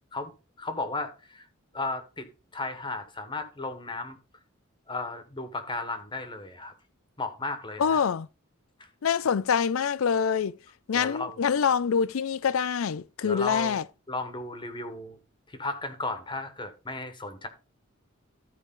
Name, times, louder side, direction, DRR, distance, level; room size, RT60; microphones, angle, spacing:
voice 1, 0.6-1.5 1.7-4.2 4.9-6.7 7.2-8.0 8.8-8.9 10.9-11.5 13.2-13.8 14.1-15.2 15.5-17.5, left 2 dB, 25° left, 1.1 m, -35 dB
voice 2, 7.8-8.3 9.0-10.6 10.9-13.8, left 7 dB, 90° left, 0.4 m, -25 dB
14.0 x 4.7 x 3.7 m
head